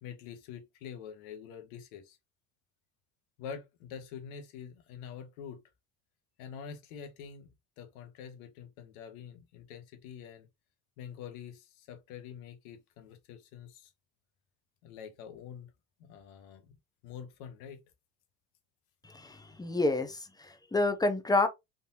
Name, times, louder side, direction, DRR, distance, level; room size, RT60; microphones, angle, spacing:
voice 1, 0.0-2.2 3.4-5.6 6.4-7.5 7.8-10.5 11.0-13.9 14.8-15.7 16.0-16.8 17.0-17.8, left 7 dB, 85° left, 1.2 m, -46 dB
voice 2, 19.1-21.5, left 2 dB, 10° left, 0.5 m, -29 dB
3.8 x 2.7 x 2.7 m
supercardioid pair, 105°, 42 cm